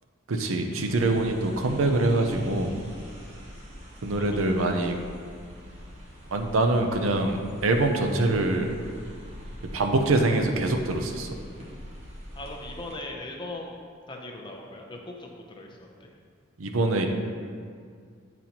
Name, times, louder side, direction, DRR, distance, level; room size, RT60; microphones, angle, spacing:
voice 1, 0.3-2.8 4.0-5.0 6.3-8.7 9.7-11.3 16.6-17.1, right 2 dB, 90° right, 4 dB, 0.6 m, -24 dB
sound 1, 0.8-12.9, equal, 35° right, 1.0 m, -44 dB
voice 2, 12.4-13.7 14.1-16.1, left 2 dB, 25° left, 0 dB, 0.6 m, -39 dB
8.7 x 4.0 x 2.9 m, 2.1 s
head